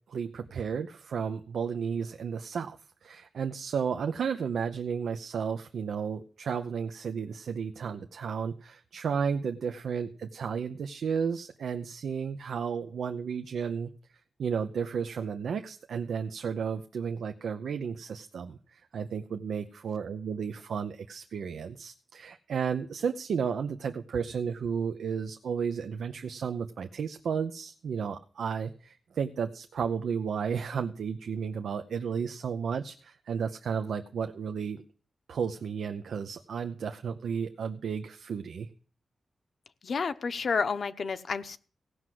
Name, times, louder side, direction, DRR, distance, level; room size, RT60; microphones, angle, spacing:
voice 1, 0.1-2.8 3.0-13.9 14.4-34.8 35.3-38.7, right 6 dB, 90° right, 7 dB, 0.8 m, -33 dB
voice 2, 39.8-41.6, left 5 dB, 55° left, 10 dB, 0.9 m, -30 dB
16.5 x 6.3 x 7.7 m, 0.42 s
wide cardioid pair, 135°, 0 cm